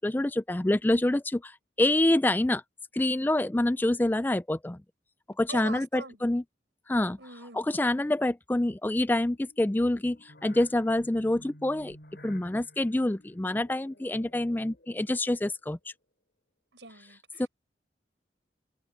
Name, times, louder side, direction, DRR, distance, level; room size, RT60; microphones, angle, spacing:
voice 1, 0.0-1.5 1.8-2.6 2.9-4.8 5.4-6.4 6.9-7.2 7.5-12.0 12.2-15.8 17.4-17.5, left 1 dB, 10° left, 0.4 m, -26 dB
voice 2, 5.5-6.2 7.2-7.6 16.7-17.4, right 3 dB, 90° right, 7.0 m, -43 dB
sound 1, 9.2-15.6, left 1 dB, 60° left, 5.9 m, -54 dB
head